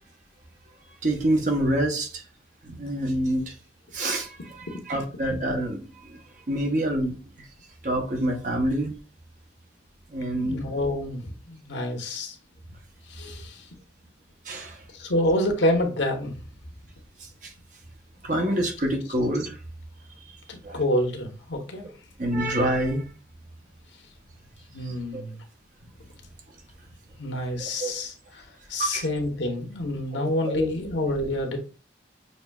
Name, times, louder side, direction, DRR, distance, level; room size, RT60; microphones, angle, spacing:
voice 1, 1.0-2.2 2.6-3.5 3.9-6.2 6.5-7.5 7.8-9.0 10.1-10.6 14.4-14.8 17.4-17.5 18.2-19.6 20.6-20.8 22.2-23.1 24.8-25.2 27.8-27.9 28.8-29.1 30.1-30.7, right 1 dB, 45° right, 0.9 m, -27 dB
voice 2, 10.3-12.4 13.1-13.7 14.9-16.3 20.5-21.9 24.7-25.4 27.2-28.1 28.7-31.6, left 1 dB, 85° left, 1.0 m, -27 dB
6.4 x 2.6 x 2.3 m
head